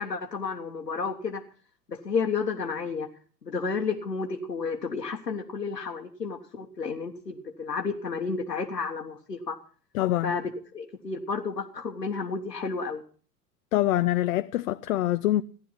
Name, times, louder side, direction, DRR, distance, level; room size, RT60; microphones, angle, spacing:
voice 1, 0.0-1.4 1.9-3.1 3.4-9.6 10.2-13.0, left 5 dB, 85° left, 1.5 m, -31 dB
voice 2, 9.9-10.3 13.7-15.4, left 14 dB, 60° left, 0.7 m, -25 dB
15.5 x 11.5 x 5.8 m
figure-of-eight pair, 90°, 48 cm